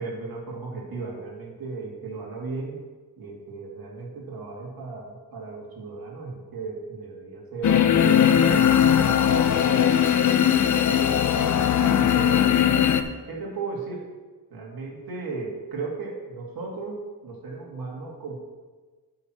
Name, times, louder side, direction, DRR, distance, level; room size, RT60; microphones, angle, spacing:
voice 1, 0.0-2.8 3.2-8.8 9.4-10.0 10.9-12.5 13.3-14.0 14.5-18.4, right 4 dB, 55° right, -3 dB, 2.1 m, -36 dB
sound 1, 7.6-13.0, left 9 dB, 45° left, 0.5 m, -19 dB
8.8 x 4.6 x 6.0 m, 1.3 s
wide cardioid pair, 175°, 42 cm